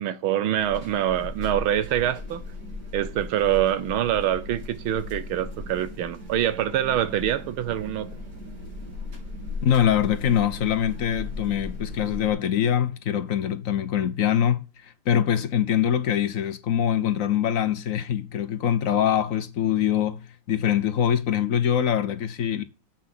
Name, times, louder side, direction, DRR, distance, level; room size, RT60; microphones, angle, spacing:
voice 1, 0.0-2.4 2.9-8.1, right 11 dB, 90° right, 1.7 m, -25 dB
sound 1, 0.6-12.3, left 2 dB, 55° right, 3.2 m, -37 dB
voice 2, 9.6-22.6, left 9 dB, 55° left, 1.0 m, -24 dB
7.5 x 5.8 x 5.9 m
omnidirectional pair, 2.2 m